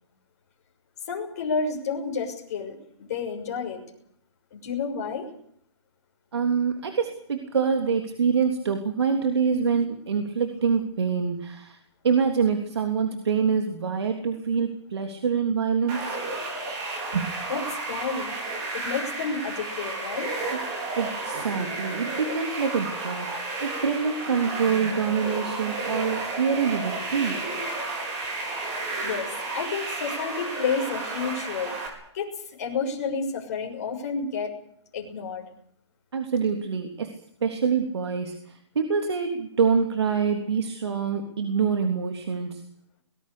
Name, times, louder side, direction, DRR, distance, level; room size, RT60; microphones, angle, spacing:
voice 1, 1.1-3.8 4.5-5.3 17.5-18.3 18.7-20.3 29.0-31.8 32.1-34.6 34.9-35.5, left 5 dB, 35° left, 1 dB, 6.5 m, -30 dB
voice 2, 6.3-11.8 12.0-16.2 17.1-17.3 20.5-20.6 20.9-27.4 36.1-37.1 37.4-42.6, right 6 dB, 65° right, 5 dB, 3.3 m, -25 dB
sound 1, 15.9-31.9, right 2 dB, 20° right, 5.0 m, -32 dB
24.5 x 20.5 x 6.8 m, 0.69 s
hypercardioid pair, 170°, 15 cm